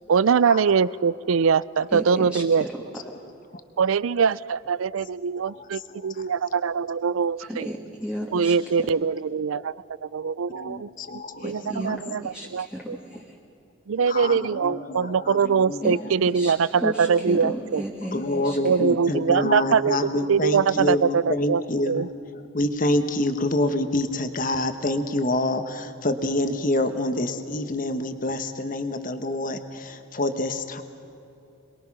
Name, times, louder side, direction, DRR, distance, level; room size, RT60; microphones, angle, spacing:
voice 1, 0.1-2.7 3.8-7.7 8.3-9.7 10.0-10.9 11.4-12.2 12.5-13.0 13.9-17.8 18.6-20.0 20.3-22.1, right 6 dB, 80° right, 20 dB, 0.4 m, -23 dB
voice 2, 1.9-3.1 7.4-8.9 11.4-13.3 15.8-18.6 18.9-19.0, equal, 5° right, -3 dB, 1.6 m, -34 dB
voice 3, 5.5-6.2 9.6-9.7 10.5-11.4 14.1-15.8 18.1-22.1 22.5-30.8, left 1 dB, 40° left, 8 dB, 1.2 m, -27 dB
27.5 x 21.0 x 6.1 m, 2.9 s
head